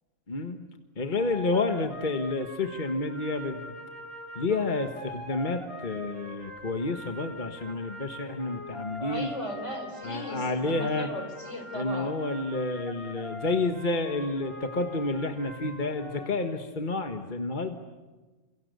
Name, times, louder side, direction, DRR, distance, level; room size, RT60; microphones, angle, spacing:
voice 1, 0.3-0.6 1.0-3.7 4.3-9.3 10.0-11.1 11.7-17.8, left 3 dB, 40° left, 6 dB, 1.6 m, -30 dB
sound 1, 1.2-16.3, left 1 dB, 25° left, 5.0 m, -42 dB
voice 2, 9.0-12.2, left 1 dB, 70° left, 6 dB, 4.4 m, -37 dB
30.0 x 27.5 x 6.8 m, 1.2 s
omnidirectional pair, 1.3 m